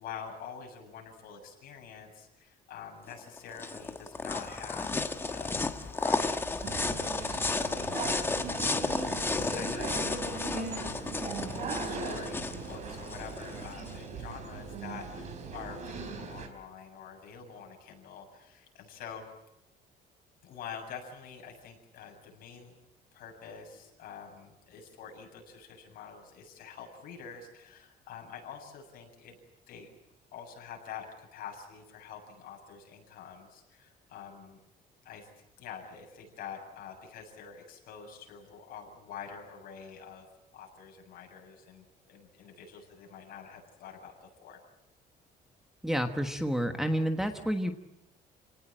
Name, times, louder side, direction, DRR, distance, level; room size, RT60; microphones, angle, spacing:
voice 1, 0.0-8.1 9.3-19.3 20.4-22.8 23.1-29.4 29.7-29.9 30.3-34.6 35.0-35.3 35.6-40.2 40.5-44.6, left 7 dB, 60° left, 2 dB, 7.7 m, -46 dB
sound 1, 3.1-14.0, left 3 dB, 15° left, 1.3 m, -33 dB
sound 2, 6.6-16.5, right 4 dB, 45° right, 4.4 m, -39 dB
voice 2, 45.8-47.7, equal, 5° right, 5 dB, 1.4 m, -29 dB
29.5 x 18.5 x 8.8 m, 0.89 s
cardioid pair, 170°, 17 cm